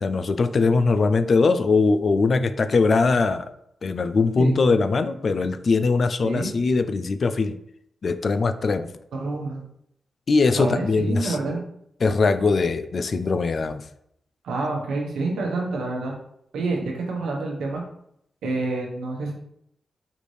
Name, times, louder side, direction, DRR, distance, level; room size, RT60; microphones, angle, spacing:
voice 1, 0.0-3.5 3.8-7.6 8.0-8.9 10.3-11.6 12.0-13.8, left 4 dB, 60° left, 11 dB, 0.3 m, -21 dB
voice 2, 9.1-9.6 10.6-11.6 14.4-16.1 16.5-17.8 18.4-19.3, right 3 dB, 90° right, -1 dB, 0.9 m, -27 dB
5.0 x 2.6 x 3.2 m, 0.74 s
cardioid pair, 50°, 0 cm